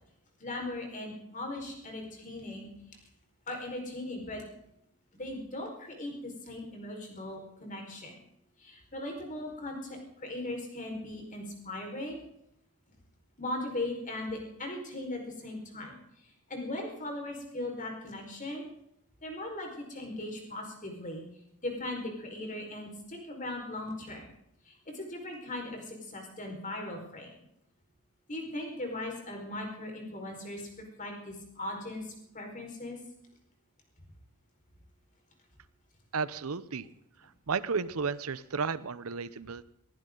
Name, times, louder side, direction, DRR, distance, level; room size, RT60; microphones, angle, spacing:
voice 1, 0.4-2.7 3.5-4.4 5.2-8.1 8.6-12.2 13.4-16.0 16.5-18.7 19.2-21.2 21.6-24.2 24.6-27.3 28.3-33.0, left 1 dB, 35° left, 2 dB, 4.9 m, -38 dB
voice 2, 36.1-36.9 37.5-39.6, right 5 dB, 80° right, 16 dB, 0.8 m, -33 dB
21.5 x 16.0 x 3.9 m, 0.77 s
head